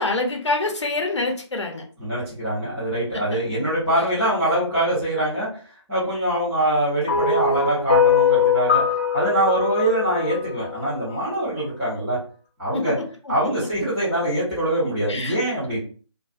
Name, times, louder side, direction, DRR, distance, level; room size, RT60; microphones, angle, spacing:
voice 1, 0.0-1.8 12.7-12.9 13.3-13.4 15.1-15.4, left 2 dB, 70° left, 3 dB, 0.7 m, -25 dB
voice 2, 2.0-5.6 5.9-8.8 9.1-12.2 12.6-12.9 13.3-15.8, right 1 dB, 5° right, -18 dB, 0.7 m, -23 dB
sound 1, 7.1-11.4, left 6 dB, 25° left, 0.4 m, -21 dB
2.4 x 2.3 x 2.4 m, 0.40 s
figure-of-eight pair, 155°, 16 cm